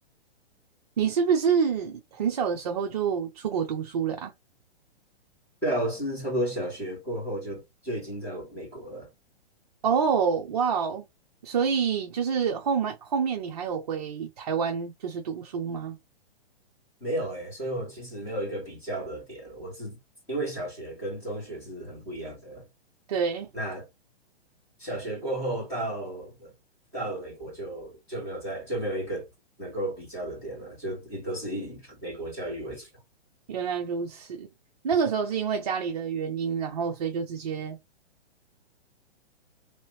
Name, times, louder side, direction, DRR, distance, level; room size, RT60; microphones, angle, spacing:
voice 1, 1.0-4.3 9.8-11.0 11.4-16.0 23.1-23.5 33.5-34.5 34.8-37.8, right 6 dB, 40° right, 0.5 m, -27 dB
voice 2, 5.6-9.1 17.0-20.0 20.3-22.7 23.5-23.9 24.8-26.5 26.9-29.3 29.6-32.9, right 1 dB, 10° left, 2.0 m, -33 dB
3.3 x 3.0 x 3.1 m
hypercardioid pair, 175°, 32 cm